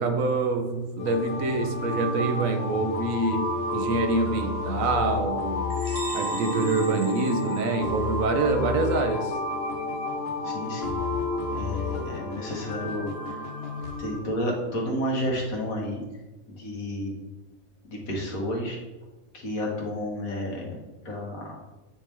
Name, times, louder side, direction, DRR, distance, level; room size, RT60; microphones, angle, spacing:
voice 1, 0.0-5.7 6.1-9.4, right 3 dB, 75° right, 5 dB, 1.2 m, -26 dB
sound 1, 1.0-14.2, left 3 dB, 50° left, 1.0 m, -31 dB
sound 2, 5.7-8.3, right 1 dB, 40° right, 1.6 m, -41 dB
voice 2, 10.4-11.0 11.5-13.4 13.8-16.0 16.5-17.2 17.8-18.8 19.3-20.8 21.1-21.6, equal, 80° left, -1 dB, 1.9 m, -31 dB
8.9 x 4.5 x 3.4 m, 1.1 s
omnidirectional pair, 1.4 m